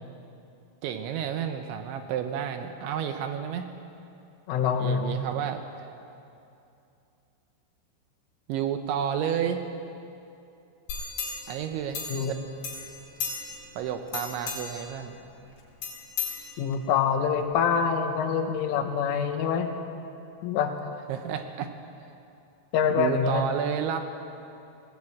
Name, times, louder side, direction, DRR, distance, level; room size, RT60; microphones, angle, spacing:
voice 1, 0.8-3.7 4.8-5.9 8.5-9.7 11.5-12.3 13.8-15.2 21.1-21.7 22.9-24.0, right 8 dB, 75° right, 7 dB, 3.0 m, -31 dB
voice 2, 4.5-5.2 12.1-12.3 16.6-19.7 20.4-20.7 22.7-23.5, left 6 dB, 80° left, 5 dB, 3.8 m, -25 dB
sound 1, 10.9-12.4 12.6-13.7 14.1-14.9 15.8-16.9 17.4-17.5, left 6 dB, 65° left, 6.1 m, -35 dB
19.0 x 18.0 x 8.7 m, 2.7 s
omnidirectional pair, 5.7 m